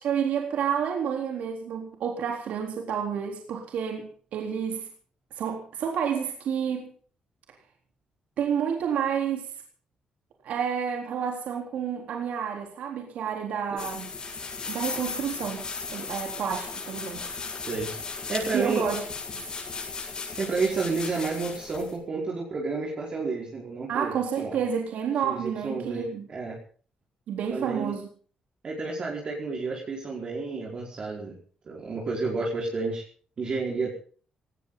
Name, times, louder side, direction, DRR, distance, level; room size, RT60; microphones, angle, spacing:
voice 1, 0.0-4.9 5.4-6.9 8.4-9.5 10.4-14.1 14.7-17.3 18.5-19.0 19.3-19.4 23.9-26.3 27.3-28.0, right 7 dB, 80° right, 2 dB, 3.8 m, -30 dB
sound 1, 13.8-22.0, left 4 dB, 35° left, 7.9 m, -36 dB
voice 2, 17.6-18.0 18.3-18.9 20.4-24.6 25.2-26.6 27.5-28.0 28.6-31.4 31.6-33.0 33.4-33.9, right 4 dB, 40° right, -2 dB, 4.8 m, -30 dB
19.0 x 18.5 x 4.0 m, 0.43 s
cardioid pair, 135°, 2 cm